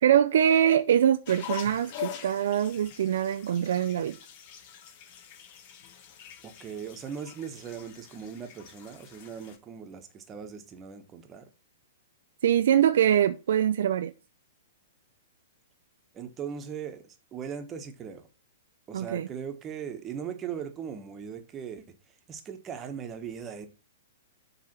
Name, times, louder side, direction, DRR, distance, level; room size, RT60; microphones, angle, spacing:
voice 1, 0.0-4.2 12.4-14.1 18.9-19.3, right 9 dB, 65° right, 0.4 m, -23 dB
sound 1, 1.2-9.6, left 10 dB, 45° left, 1.2 m, -43 dB
voice 2, 6.4-11.5 16.1-18.3 18.9-21.8 22.3-23.7, right 7 dB, 25° right, 1.3 m, -39 dB
7.4 x 3.4 x 6.0 m
hypercardioid pair, 115°, 0 cm